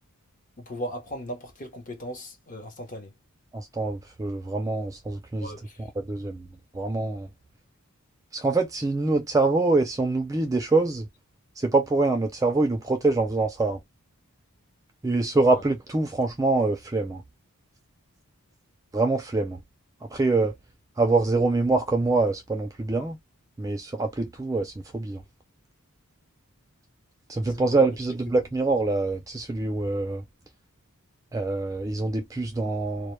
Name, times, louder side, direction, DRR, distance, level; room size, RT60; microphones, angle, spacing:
voice 1, 0.6-3.1 5.4-5.8 27.6-27.7, equal, 35° left, 0.7 m, -37 dB
voice 2, 3.5-5.5 6.0-6.5 6.7-7.3 8.3-11.1 11.6-13.8 15.0-17.2 18.9-19.6 20.1-20.5 21.0-23.2 23.6-25.2 27.3-30.2 31.3-33.1, right 3 dB, 15° right, 0.3 m, -25 dB
2.1 x 2.1 x 3.0 m
head